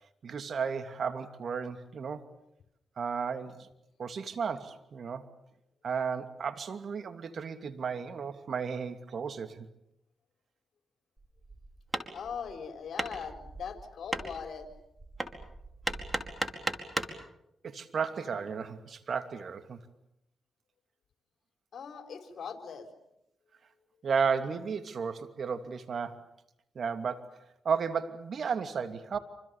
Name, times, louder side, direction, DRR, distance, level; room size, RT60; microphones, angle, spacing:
voice 1, 0.2-2.3 3.0-3.7 4.0-5.2 5.8-9.7 17.6-19.8 24.0-26.2 26.7-27.4 27.6-29.2, right 6 dB, 60° right, 9 dB, 2.7 m, -33 dB
Hammer, 11.2-17.2, right 2 dB, 20° right, 4.8 m, -37 dB
voice 2, 12.1-14.7 21.7-22.9, left 6 dB, 70° left, 7 dB, 4.4 m, -40 dB
28.0 x 26.5 x 7.3 m, 0.84 s
supercardioid pair, 55°, 0 cm